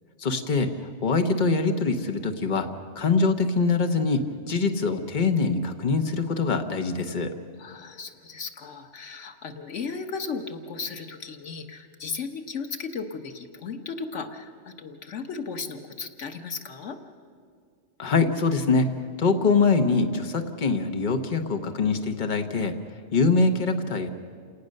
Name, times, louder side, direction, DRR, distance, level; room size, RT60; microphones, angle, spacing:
voice 1, 0.2-0.8 1.0-2.7 3.0-7.3 18.0-18.9 19.2-22.7 23.1-24.1, left 4 dB, 45° left, 5 dB, 1.2 m, -23 dB
voice 2, 7.6-17.0, left 5 dB, 90° left, 6 dB, 1.6 m, -35 dB
28.5 x 18.5 x 6.6 m, 2.2 s
omnidirectional pair, 1.2 m